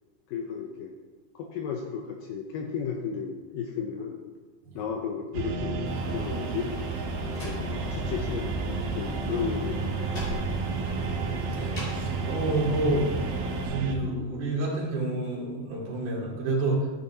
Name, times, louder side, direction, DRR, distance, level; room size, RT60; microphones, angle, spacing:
voice 1, 0.3-1.0 1.4-4.2 4.8-5.9 6.1-6.7 7.4-10.4, left 6 dB, 85° left, 3 dB, 1.9 m, -34 dB
sound 1, 5.3-13.9, right 4 dB, 80° right, 2.4 m, -31 dB
Wind, 5.8-13.7, left 1 dB, 55° left, 2.1 m, -44 dB
Slam, 7.1-8.4 8.7-12.2, equal, 35° left, 2.2 m, -41 dB
voice 2, 11.5-13.1 13.6-16.9, right 2 dB, 55° right, -4 dB, 3.4 m, -29 dB
12.5 x 8.8 x 2.8 m, 1.3 s
omnidirectional pair, 4.6 m